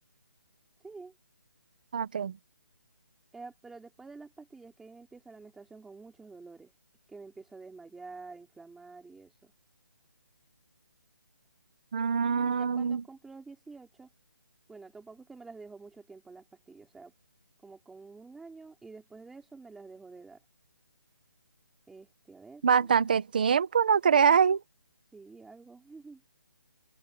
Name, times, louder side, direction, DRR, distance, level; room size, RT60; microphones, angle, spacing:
voice 1, 1.9-2.4 11.9-13.0 22.6-24.6, right 6 dB, 25° right, 1.2 m, -24 dB
voice 2, 3.3-6.7 7.1-9.5 12.1-14.1 14.7-17.1 17.6-20.4 21.9-22.9 25.1-26.2, right 4 dB, ahead, 4.0 m, -49 dB
hypercardioid pair, 180°, 11 cm